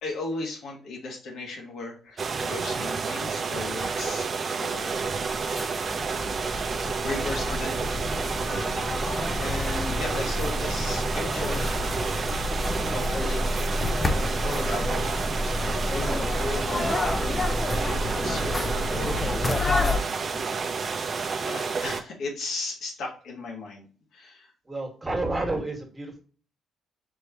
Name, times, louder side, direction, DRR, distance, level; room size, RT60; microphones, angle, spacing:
voice 1, 0.0-5.4 5.7-6.1 7.0-7.7 9.4-11.8 12.9-13.6 14.1-17.4 17.8-20.6 21.4-23.8 24.1-24.5, left 3 dB, 75° left, 0 dB, 1.7 m, -37 dB
sound 1, 2.2-22.0, right 5 dB, 45° right, 0.5 m, -30 dB
sound 2, 4.9-20.0, left 2 dB, 20° left, 0.6 m, -29 dB
voice 2, 24.6-26.2, right 2 dB, 20° right, 2 dB, 1.6 m, -30 dB
4.5 x 3.3 x 2.8 m, 0.40 s
cardioid pair, 90°, 0 cm